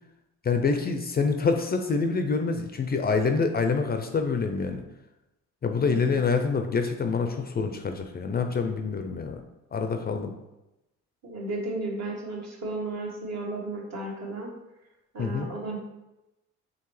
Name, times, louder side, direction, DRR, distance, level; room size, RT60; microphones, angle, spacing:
voice 1, 0.4-4.8 5.6-9.4 9.7-10.3 15.2-15.5, left 4 dB, 30° left, 6 dB, 0.4 m, -26 dB
voice 2, 11.2-14.5 15.1-15.8, right 2 dB, 60° right, -2 dB, 1.4 m, -34 dB
4.7 x 3.2 x 3.2 m, 0.95 s
cardioid pair, 90°, 30 cm